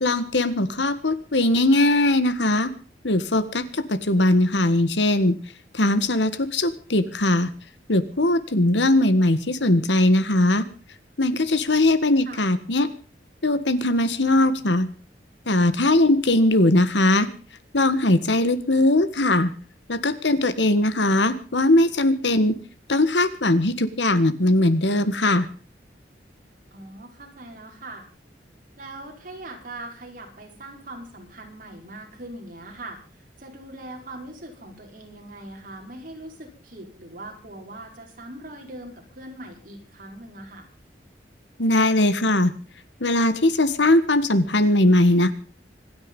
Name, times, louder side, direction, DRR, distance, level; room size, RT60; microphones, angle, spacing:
voice 1, 0.0-2.7 3.0-5.4 5.7-7.5 7.9-10.6 11.2-12.9 13.4-14.9 15.5-17.3 17.7-19.5 19.9-22.6 22.9-25.5 41.6-42.5 43.0-45.3, left 1 dB, 85° left, 13 dB, 1.6 m, -20 dB
voice 2, 26.7-28.0 28.8-40.7, right 1 dB, 50° right, 2 dB, 4.9 m, -41 dB
25.5 x 9.7 x 5.4 m, 0.38 s
head